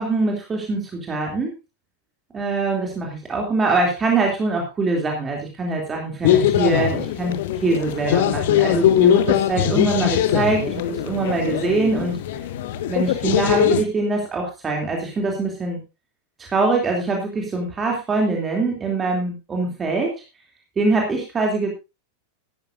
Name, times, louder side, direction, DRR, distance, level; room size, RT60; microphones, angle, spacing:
voice 1, 0.0-1.5 2.3-7.4 7.6-12.2 12.9-15.8 16.4-20.1 20.8-21.7, right 3 dB, 20° right, 0 dB, 3.0 m, -23 dB
sound 1, 6.2-13.8, left 11 dB, 55° left, 1.0 m, -21 dB
14.5 x 12.5 x 2.7 m, 0.27 s
figure-of-eight pair, 90°, 0 cm